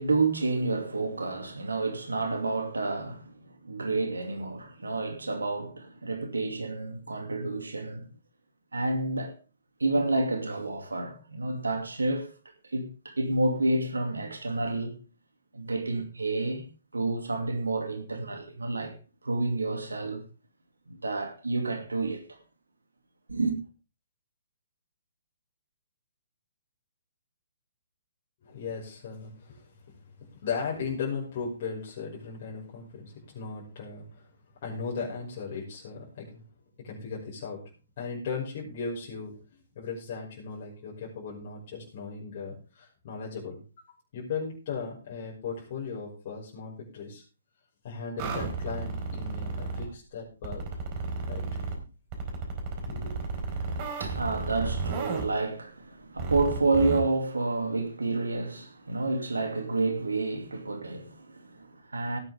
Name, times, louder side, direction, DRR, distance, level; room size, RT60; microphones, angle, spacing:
voice 1, 0.0-8.1 8.7-9.3 9.8-12.3 12.6-14.9 15.5-16.6 16.9-19.0 19.2-20.2 20.9-22.4 23.3-23.6 53.7-62.2, right 2 dB, 80° right, 2.6 m, -29 dB
voice 2, 28.4-34.3 34.6-36.4 36.8-37.6 38.0-43.9 44.1-47.2 47.8-50.7 51.3-51.4 52.8-53.2, left 5 dB, 45° left, 5.8 m, -37 dB
sound 1, 48.2-49.9 50.4-51.7 52.1-55.3 56.2-57.0, right 4 dB, 35° right, 4.3 m, -33 dB
18.0 x 9.3 x 3.6 m
figure-of-eight pair, 125°, 0 cm